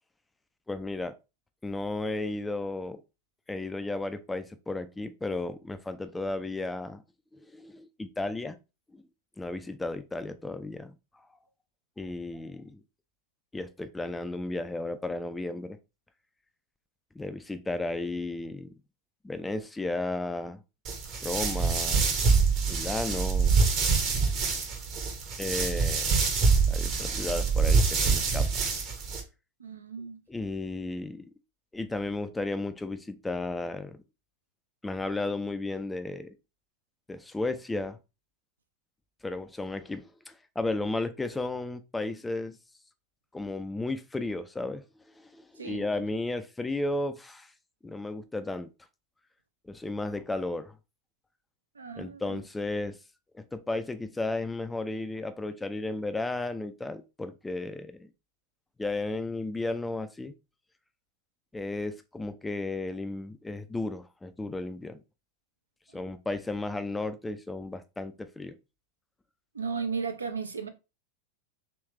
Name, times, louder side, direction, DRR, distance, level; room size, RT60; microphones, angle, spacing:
voice 1, 0.7-1.2 1.6-3.0 3.5-7.0 7.3-8.6 8.9-9.0 9.4-10.9 12.0-12.8 13.5-15.8 17.2-18.7 19.2-20.6 21.2-22.1 22.7-23.6 25.4-26.1 26.7-28.7 30.3-31.3 31.7-34.0 34.8-36.4 37.1-38.0 39.2-42.6 43.3-44.8 45.2-47.5 47.8-48.7 49.6-50.8 52.0-53.0 53.3-58.1 58.8-60.3 61.5-65.0 65.9-68.6, left 2 dB, 10° left, 0.3 m, -34 dB
sound 1, 20.8-29.2, right 5 dB, 35° right, 0.9 m, -25 dB
voice 2, 29.6-30.2 45.6-45.9 51.8-52.4 69.5-70.7, right 5 dB, 75° right, 0.5 m, -35 dB
3.2 x 3.1 x 3.0 m
figure-of-eight pair, 90°, 0 cm